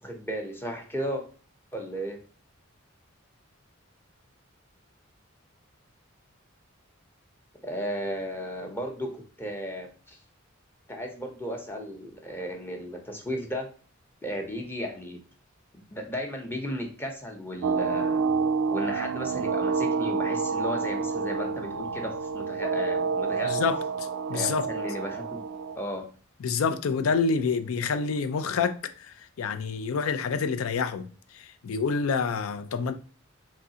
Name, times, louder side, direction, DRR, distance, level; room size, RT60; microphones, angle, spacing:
voice 1, 0.0-1.2 1.7-2.2 7.6-10.2 10.9-13.7 14.2-15.2 15.9-18.3 18.7-23.7 24.3-25.4 25.7-26.0, equal, 10° left, 0.7 m, -35 dB
sound 1, 17.6-25.8, right 5 dB, 80° right, 0.3 m, -28 dB
voice 2, 23.4-24.7 26.4-32.9, left 5 dB, 85° left, 0.4 m, -28 dB
3.6 x 3.1 x 2.8 m
head